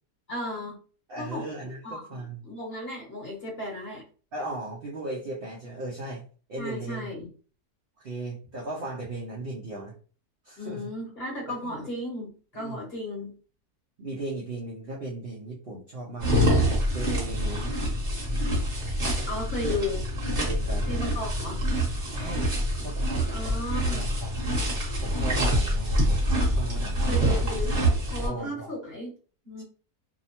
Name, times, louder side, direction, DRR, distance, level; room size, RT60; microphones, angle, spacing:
voice 1, 0.3-0.8 1.2-1.5 1.8-4.0 6.6-7.3 10.6-13.3 19.3-20.0 20.9-21.6 23.3-24.1 27.1-29.1 29.4-29.6, left 1 dB, 45° left, -3 dB, 1.0 m, -35 dB
voice 2, 1.1-2.4 4.3-6.2 6.5-7.1 8.0-10.0 10.4-10.8 11.5-11.9 12.6-12.8 14.0-16.3 16.9-17.8 20.4-20.9 22.1-23.3 23.8-24.4 25.0-26.2 26.6-27.4 28.2-28.7 29.6-29.7, right 2 dB, 70° right, -2 dB, 0.5 m, -37 dB
sound 1, 16.2-28.3, equal, 30° right, 1.0 m, -26 dB
2.7 x 2.0 x 2.8 m, 0.39 s
omnidirectional pair, 1.7 m